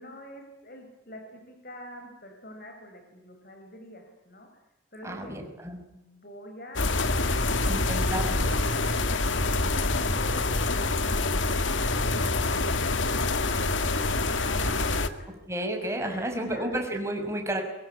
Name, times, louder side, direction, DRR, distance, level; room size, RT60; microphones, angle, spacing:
voice 1, 0.0-4.5 4.9-5.3 5.9-6.8 12.4-15.3 15.8-16.6, left 1 dB, 50° left, 4 dB, 5.1 m, -46 dB
voice 2, 5.0-5.8 7.6-8.5 8.8-8.9 15.5-17.6, right 1 dB, 15° right, 3 dB, 6.1 m, -31 dB
sound 1, 6.7-15.1, left 2 dB, 85° left, 2.0 m, -26 dB
24.0 x 23.5 x 9.9 m, 0.93 s
head